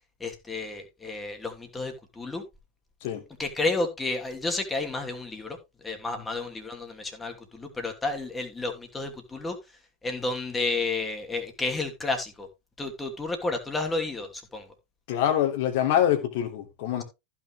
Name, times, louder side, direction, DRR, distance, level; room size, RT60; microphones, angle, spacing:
voice 1, 0.2-2.4 3.4-5.6 5.8-9.6 10.0-12.5 12.8-14.7, left 3 dB, 10° left, 2.8 m, -31 dB
voice 2, 15.1-17.0, left 10 dB, 50° left, 2.9 m, -25 dB
15.0 x 6.1 x 3.2 m
figure-of-eight pair, 90°, 0 cm